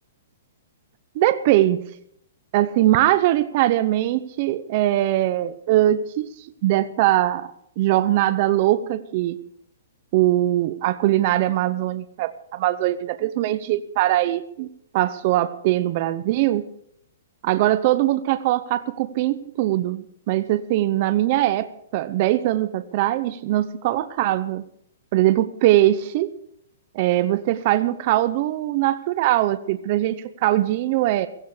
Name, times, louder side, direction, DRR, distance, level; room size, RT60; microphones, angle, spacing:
voice 1, 1.1-1.8 2.5-6.3 6.6-7.5 7.8-9.4 10.1-14.7 14.9-16.7 17.4-21.7 21.9-24.6 25.1-26.3 26.9-31.3, right 14 dB, 35° right, 11 dB, 0.8 m, -21 dB
16.5 x 16.0 x 5.0 m, 0.70 s
hypercardioid pair, 170°, 0 cm